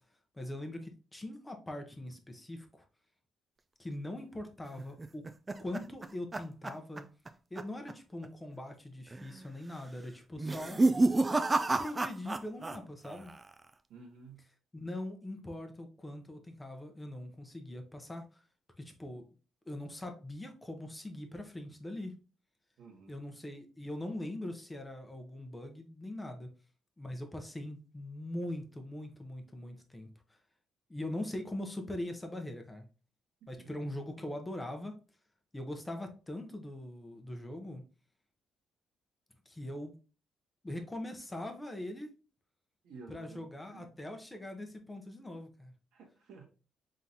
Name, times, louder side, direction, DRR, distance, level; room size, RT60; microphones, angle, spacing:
voice 1, 0.3-2.7 3.8-5.3 5.6-7.1 7.5-10.8 11.8-13.3 14.7-18.4 18.8-19.3 19.7-22.2 23.1-26.5 27.0-30.1 30.9-32.8 33.5-35.0 35.5-37.8 39.5-40.0 40.6-42.1 43.1-45.7, left 1 dB, 15° left, 0.8 m, -41 dB
sound 1, 4.8-7.3 7.6-7.9 8.2-8.3 9.1-9.5 10.3-12.8 13.0-13.6, right 2 dB, 25° right, 0.4 m, -30 dB
voice 2, 13.9-14.4 22.8-23.2 33.6-33.9 42.8-43.9 45.9-46.4, right 4 dB, 85° right, 1.5 m, -53 dB
3.8 x 3.7 x 2.8 m
cardioid pair, 90°, 0 cm